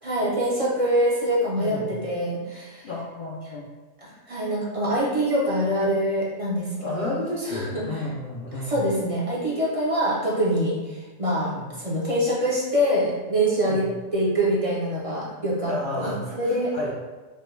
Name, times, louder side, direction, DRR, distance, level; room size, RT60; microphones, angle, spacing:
voice 1, 0.0-2.9 4.0-7.2 7.5-7.8 8.7-13.8 14.1-16.7, equal, 35° right, -5 dB, 0.5 m, -25 dB
voice 2, 1.6-2.0 2.8-3.6 6.8-8.9 11.4-11.7 13.7-13.9 15.6-16.9, left 2 dB, 55° left, -5 dB, 0.5 m, -32 dB
5.2 x 2.2 x 3.1 m, 1.2 s
omnidirectional pair, 1.5 m